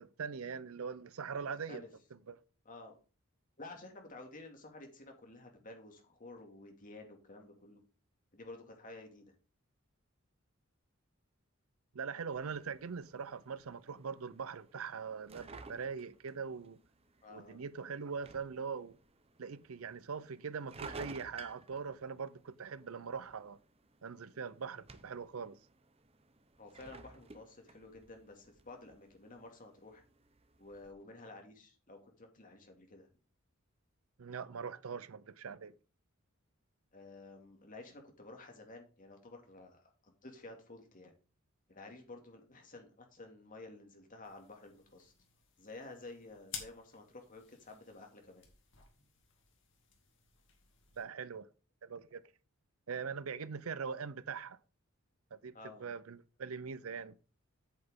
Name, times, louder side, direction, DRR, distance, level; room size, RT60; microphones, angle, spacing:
voice 1, 0.0-1.8 2.3-2.4 11.9-16.8 17.3-19.0 19.4-23.6 24.0-25.6 34.2-35.7 51.0-51.5 51.8-52.2 52.9-54.6 55.3-57.2, right 6 dB, 90° right, 0.6 m, -42 dB
voice 2, 1.4-1.9 2.6-2.9 3.6-7.8 8.3-9.3 17.2-17.6 26.6-30.0 30.6-33.1 36.9-41.1 41.7-45.1 45.6-48.4 55.5-55.9, left 2 dB, 40° left, 2.3 m, -52 dB
sound 1, 12.3-30.9, right 3 dB, 30° right, 0.8 m, -56 dB
sound 2, 44.2-51.0, left 7 dB, 60° left, 2.3 m, -53 dB
8.3 x 8.1 x 3.7 m
head